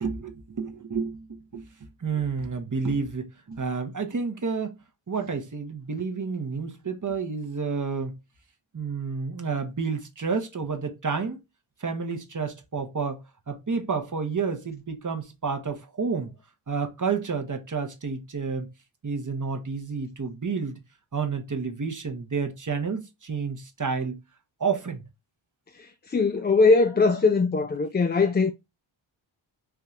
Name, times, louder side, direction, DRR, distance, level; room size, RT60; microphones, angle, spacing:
voice 1, 0.0-4.8 5.1-8.2 8.7-11.4 11.8-13.2 13.5-16.3 16.7-18.7 19.0-20.8 21.1-24.2 24.6-25.0, right 5 dB, 40° right, 0.9 m, -30 dB
voice 2, 25.8-28.5, left 4 dB, 25° left, 0.3 m, -21 dB
4.7 x 2.7 x 2.4 m
wide cardioid pair, 65°, 48 cm